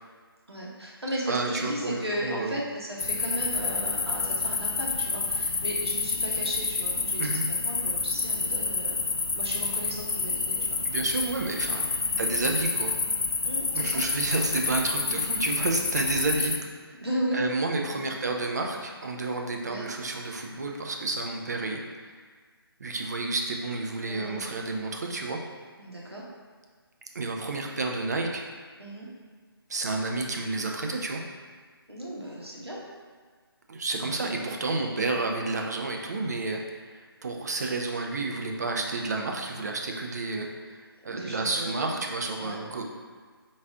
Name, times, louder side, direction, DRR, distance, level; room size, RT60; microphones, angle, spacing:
voice 1, 0.5-9.0 9.4-10.8 11.7-12.1 13.4-14.0 15.0-15.2 17.0-17.4 17.9-18.0 19.7-19.9 24.1-24.5 25.8-26.2 28.8-29.1 31.9-32.8 34.0-34.3 34.9-35.2 41.0-42.0 42.4-42.6, equal, 90° right, -5 dB, 1.1 m, -35 dB
voice 2, 1.3-2.6 7.2-7.4 10.8-13.0 13.7-16.5 16.8-17.0 17.3-21.8 22.8-25.4 27.1-28.4 29.7-31.2 33.7-36.8 37.2-42.8, right 3 dB, 45° right, 2 dB, 0.4 m, -30 dB
sound 1, 3.0-16.6, left 4 dB, 70° left, 0.4 m, -29 dB
3.9 x 2.5 x 3.5 m, 1.5 s
figure-of-eight pair, 150°, 13 cm